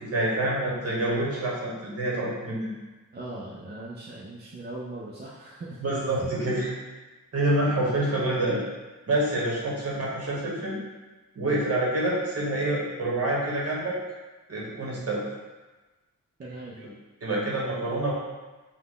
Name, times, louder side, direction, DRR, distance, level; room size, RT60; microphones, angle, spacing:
voice 1, 0.0-2.7 5.8-6.7 7.3-8.6 9.1-10.8 11.3-14.0 14.5-15.2 17.2-18.1, right 1 dB, 45° right, -4 dB, 1.2 m, -27 dB
voice 2, 3.1-5.8 16.4-16.8, right 2 dB, 30° right, -5 dB, 0.4 m, -39 dB
5.7 x 2.2 x 3.7 m, 1.2 s
wide cardioid pair, 170°, 34 cm